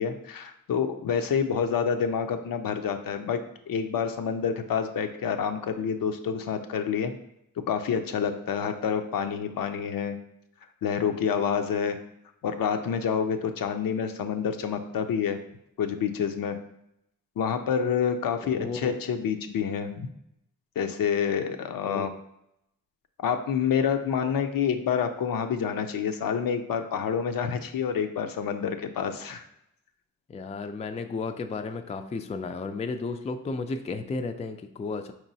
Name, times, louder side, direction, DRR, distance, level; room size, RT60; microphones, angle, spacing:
voice 1, 0.0-3.4 3.7-7.1 7.7-10.2 10.8-12.0 12.4-15.4 15.8-16.6 17.4-20.1 20.8-22.1 23.2-29.5, left 7 dB, 65° left, 7 dB, 0.5 m, -28 dB
voice 2, 18.4-19.0 21.8-22.2 30.3-35.1, left 4 dB, 20° left, 7 dB, 0.3 m, -33 dB
4.4 x 3.0 x 2.7 m, 0.80 s
supercardioid pair, 40°, 37 cm